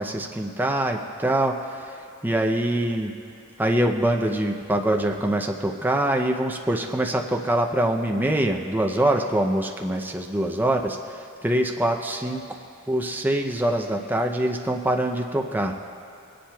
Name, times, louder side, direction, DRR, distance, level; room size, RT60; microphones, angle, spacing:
voice 1, 0.0-3.1 3.6-12.5 12.9-15.7, right 1 dB, 10° right, 2 dB, 0.5 m, -24 dB
20.0 x 10.0 x 2.3 m, 2.5 s
head